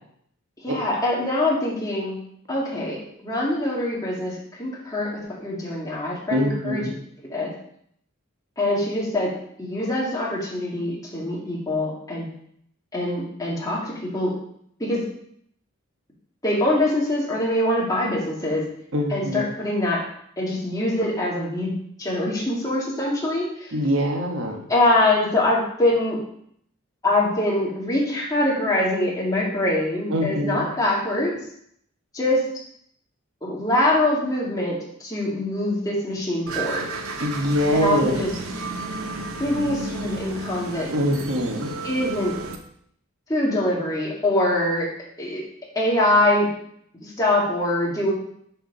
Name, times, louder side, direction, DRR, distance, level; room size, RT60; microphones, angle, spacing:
voice 1, 0.6-2.2 2.5-6.9 7.2-7.5 8.6-9.3 9.6-12.3 12.9-14.4 14.8-15.1 16.4-18.7 19.1-20.0 20.4-21.7 22.0-23.7 24.7-26.2 27.0-31.4 32.1-32.5 33.4-36.9 37.7-38.3 39.4-40.9 41.8-42.3 43.3-44.9 45.2-45.5 45.7-46.5 47.0-48.1, left 1 dB, 15° left, -5 dB, 2.1 m, -24 dB
voice 2, 6.3-6.9 18.9-19.4 23.7-24.6 30.1-30.6 37.2-38.1 40.9-41.7, equal, 65° right, 1 dB, 1.2 m, -23 dB
sound 1, 36.5-42.6, right 3 dB, 80° right, 0.9 m, -32 dB
7.7 x 4.6 x 5.5 m, 0.68 s
head